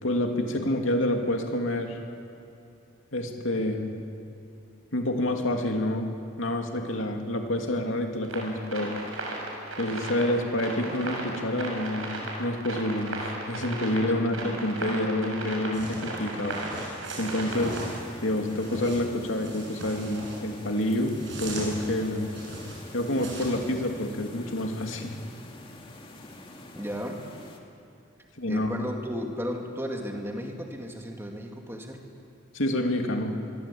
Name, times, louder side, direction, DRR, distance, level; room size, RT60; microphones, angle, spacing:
voice 1, 0.0-2.0 3.1-3.8 4.9-6.1 6.4-8.9 9.8-12.1 12.4-17.8 18.2-22.3 22.9-25.2 28.4-28.7 32.5-33.3, left 1 dB, 70° left, 3 dB, 2.7 m, -28 dB
sound 1, 8.2-18.0, right 2 dB, 85° right, 6.3 m, -36 dB
sound 2, 15.7-23.8, right 1 dB, 60° right, 7.7 m, -39 dB
sound 3, 17.5-27.6, left 2 dB, 25° left, 2.2 m, -46 dB
voice 2, 26.7-27.2 28.5-32.0, equal, 10° right, 2 dB, 2.5 m, -34 dB
24.0 x 23.5 x 8.6 m, 2.6 s
head